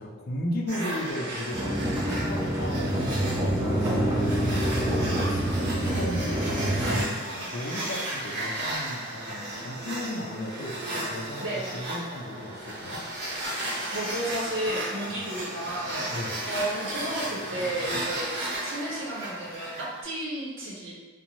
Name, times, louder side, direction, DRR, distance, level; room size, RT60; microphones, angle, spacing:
voice 1, 0.0-3.2 3.7-13.0 15.1-15.2 16.1-16.4, left 1 dB, 50° left, 0 dB, 0.4 m, -36 dB
sound 1, 0.7-20.0, right 1 dB, 60° right, 0.8 m, -34 dB
sound 2, 1.5-7.0, right 1 dB, 15° right, 0.4 m, -26 dB
voice 2, 11.4-11.8 13.9-15.9 16.5-18.4 18.6-20.9, right 1 dB, 90° right, -5 dB, 0.8 m, -33 dB
2.6 x 2.0 x 2.9 m, 1.2 s
head